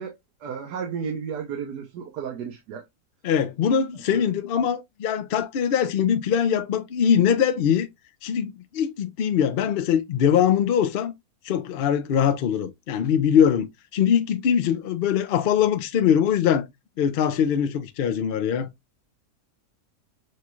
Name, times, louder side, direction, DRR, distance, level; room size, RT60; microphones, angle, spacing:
voice 1, 0.0-2.8 4.1-4.2, right 7 dB, 80° right, 1.4 m, -33 dB
voice 2, 3.2-7.9 8.2-11.1 11.5-16.7 17.0-18.7, left 8 dB, 75° left, 0.5 m, -22 dB
6.3 x 2.3 x 3.0 m
omnidirectional pair, 1.7 m